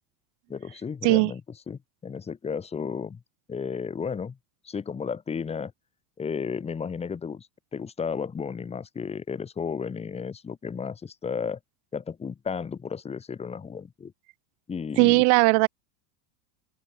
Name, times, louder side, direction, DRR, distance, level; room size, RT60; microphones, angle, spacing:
voice 1, 0.5-1.4 1.7-3.2 3.5-4.4 4.6-5.7 6.2-7.5 7.7-11.6 11.9-14.1 14.7-15.2, left 6 dB, 15° left, 2.1 m, -33 dB
voice 2, 15.0-15.7, right 35 dB, 40° right, 0.7 m, -18 dB
open air
supercardioid pair, 165°, 47 cm